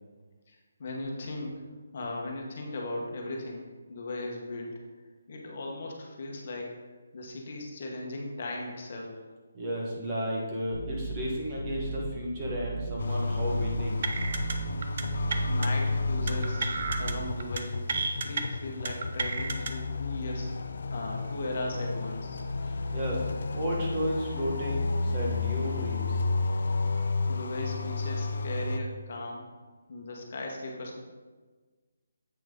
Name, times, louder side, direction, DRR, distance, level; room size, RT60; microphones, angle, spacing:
voice 1, 0.5-1.5 1.9-4.7 5.3-6.8 7.1-9.2 14.7-14.8 15.4-16.7 17.0-17.8 18.2-20.5 20.9-22.4 27.3-29.4 29.9-31.0, left 2 dB, 40° left, -1 dB, 1.2 m, -37 dB
voice 2, 9.5-14.0 22.6-23.3 23.5-26.2, equal, 20° right, -4 dB, 1.3 m, -33 dB
sound 1, 10.7-17.6, right 3 dB, 75° right, 2.5 m, -37 dB
sound 2, 13.0-28.8, left 3 dB, 60° left, 0.5 m, -32 dB
sound 3, 14.0-14.5 14.8-15.0 15.3-15.7 16.3-17.1 17.4-17.6 17.9-18.4 18.8-19.7, right 4 dB, 40° right, 0.6 m, -32 dB
8.0 x 5.8 x 3.8 m, 1.4 s
hypercardioid pair, 170°, 0 cm